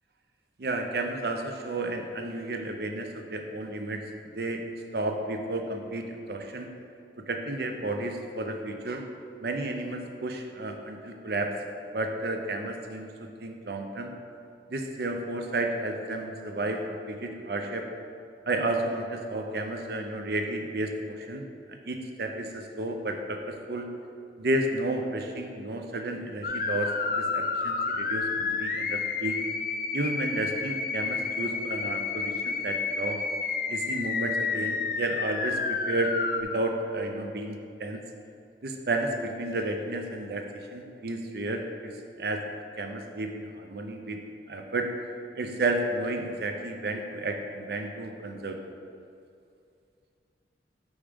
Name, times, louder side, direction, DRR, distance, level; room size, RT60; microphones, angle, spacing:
voice 1, 0.6-4.0 4.3-4.6 4.9-6.7 7.3-9.0 9.4-11.5 11.9-14.1 14.7-17.8 18.5-23.9 24.4-29.4 29.9-33.2 33.7-35.6 35.9-36.1 36.4-38.0 38.6-40.4 40.7-41.9 42.2-42.4 42.8-44.2 44.5-44.9 45.4-48.6, right 2 dB, 60° right, 4 dB, 0.6 m, -32 dB
sound 1, 26.4-36.4, left 4 dB, 50° left, 0.4 m, -30 dB
5.4 x 4.8 x 5.1 m, 2.4 s
head